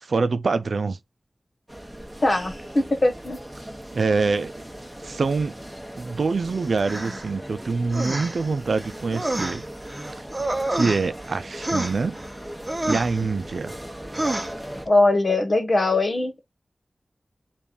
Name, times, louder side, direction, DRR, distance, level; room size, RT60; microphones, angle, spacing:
voice 1, 0.0-1.0 3.9-4.5 5.0-5.6 6.0-9.6 10.2-10.3 10.7-12.2 12.8-13.7, right 4 dB, 80° right, 0.4 m, -25 dB
sound 1, 1.7-14.9, right 1 dB, 5° right, 1.1 m, -39 dB
voice 2, 2.2-3.4 14.9-16.4, left 2 dB, 50° left, 1.1 m, -21 dB
sound 2, 6.8-7.3 7.9-8.5 8.7-11.3 11.6-12.3 12.7-13.2 14.1-14.5, right 1 dB, 25° right, 0.8 m, -28 dB
6.9 x 2.4 x 2.6 m
wide cardioid pair, 60°, 0 cm